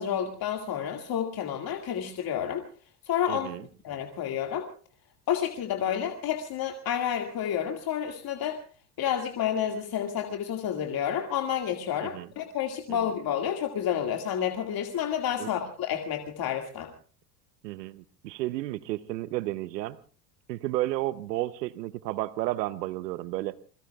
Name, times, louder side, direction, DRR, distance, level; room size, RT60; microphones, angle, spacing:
voice 1, 0.0-2.6 3.0-3.6 3.8-4.7 5.3-8.6 9.0-16.9, left 9 dB, 45° left, 4 dB, 2.2 m, -30 dB
voice 2, 3.3-3.6 12.0-12.3 12.9-13.1 15.4-15.5 17.6-20.0 20.5-23.5, right 16 dB, 85° right, 16 dB, 0.8 m, -32 dB
27.5 x 22.0 x 2.3 m, 0.39 s
hypercardioid pair, 75°, 48 cm